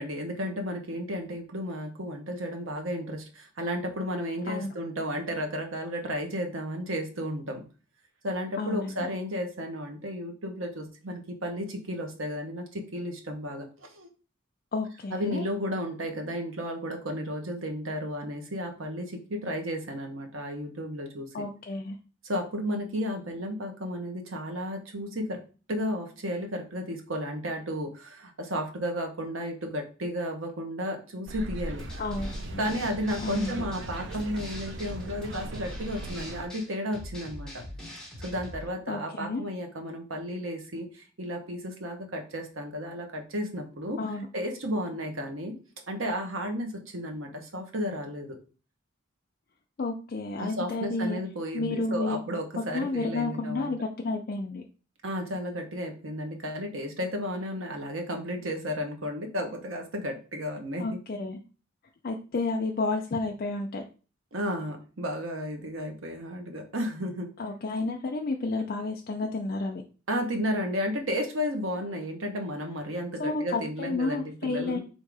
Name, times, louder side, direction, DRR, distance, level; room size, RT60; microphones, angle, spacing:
voice 1, 0.0-7.6 8.2-14.1 15.1-21.3 22.2-25.4 25.7-31.8 32.6-37.6 38.2-44.0 44.3-45.5 45.9-48.4 50.4-53.7 55.0-61.0 64.3-67.3 70.1-74.8, equal, 80° right, 4 dB, 1.0 m, -33 dB
voice 2, 8.6-9.1 14.7-15.4 21.3-22.0 32.0-32.6 33.2-33.6 38.9-39.4 44.0-44.3 49.8-51.2 51.5-52.2 52.7-54.6 60.8-61.4 62.0-63.8 67.4-69.8 73.2-74.8, left 3 dB, 45° left, 2 dB, 0.4 m, -31 dB
sound 1, 31.3-36.5, right 2 dB, 60° right, 0.5 m, -39 dB
sound 2, 31.8-38.6, left 1 dB, 5° left, 1.0 m, -42 dB
3.7 x 2.7 x 4.7 m, 0.36 s
head